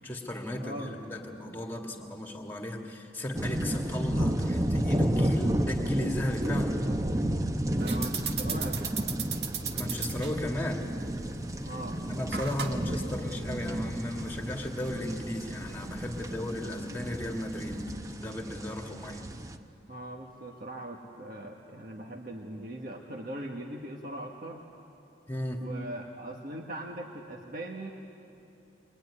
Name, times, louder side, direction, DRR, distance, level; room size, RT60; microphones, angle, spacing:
voice 1, 0.0-6.8 9.7-10.8 12.1-17.8 18.2-19.2 25.3-25.6, left 1 dB, 10° left, 2 dB, 2.1 m, -35 dB
voice 2, 0.6-1.0 7.8-8.9 11.6-12.0 19.9-24.6 25.6-27.9, right 1 dB, 50° right, 0 dB, 1.5 m, -40 dB
sound 1, 3.3-19.6, right 1 dB, 20° right, 0.8 m, -32 dB
sound 2, 7.8-17.8, right 7 dB, 65° right, 1.6 m, -40 dB
23.5 x 22.5 x 9.8 m, 2.8 s
head